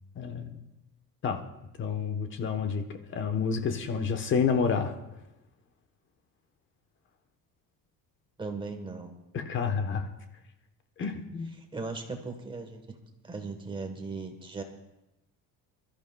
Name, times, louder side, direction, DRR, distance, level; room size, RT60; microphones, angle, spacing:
voice 1, 0.1-0.6 1.2-1.4 1.8-2.8 3.1-4.9 9.3-10.1 11.0-11.5, left 6 dB, 35° left, 6 dB, 1.1 m, -29 dB
voice 2, 8.4-9.1 11.6-13.0 13.2-14.6, right 3 dB, 15° right, 4 dB, 1.3 m, -38 dB
24.5 x 13.5 x 2.3 m, 0.94 s
cardioid pair, 165°, 36 cm